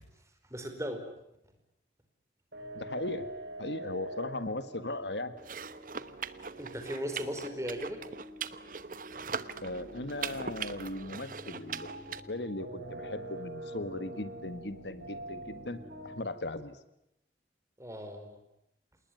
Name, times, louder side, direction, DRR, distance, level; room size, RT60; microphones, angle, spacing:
voice 1, 0.5-1.0 6.6-8.0 17.8-18.4, equal, 15° right, 6 dB, 4.7 m, -37 dB
sound 1, 2.5-16.2, right 1 dB, 70° right, 6.0 m, -46 dB
voice 2, 2.7-3.3 3.6-5.4 9.6-16.8, left 2 dB, 75° left, 12 dB, 1.7 m, -38 dB
sound 2, 5.4-12.2, right 6 dB, 50° right, 1.1 m, -41 dB
28.0 x 20.5 x 9.4 m, 0.83 s
head